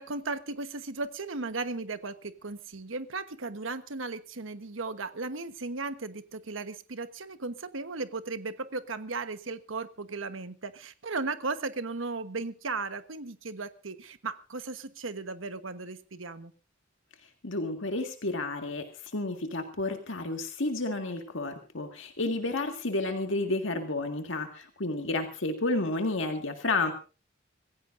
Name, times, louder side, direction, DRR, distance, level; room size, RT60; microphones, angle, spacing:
voice 1, 0.0-16.5, right 3 dB, 85° right, 11 dB, 1.2 m, -36 dB
voice 2, 17.4-26.9, left 2 dB, 75° left, 4 dB, 1.9 m, -31 dB
26.0 x 15.5 x 2.6 m, 0.34 s
head